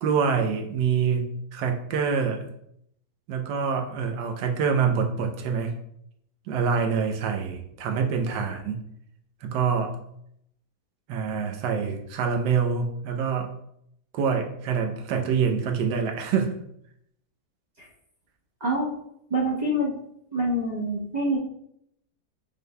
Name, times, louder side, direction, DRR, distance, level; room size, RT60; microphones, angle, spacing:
voice 1, 0.0-2.5 3.3-5.7 6.5-8.8 9.4-9.9 11.1-13.5 14.1-16.5, right 6 dB, 85° right, 3 dB, 1.3 m, -26 dB
voice 2, 19.3-19.9 20.3-21.4, right 1 dB, 30° right, -5 dB, 0.9 m, -26 dB
5.5 x 3.5 x 2.2 m, 0.73 s
omnidirectional pair, 1.9 m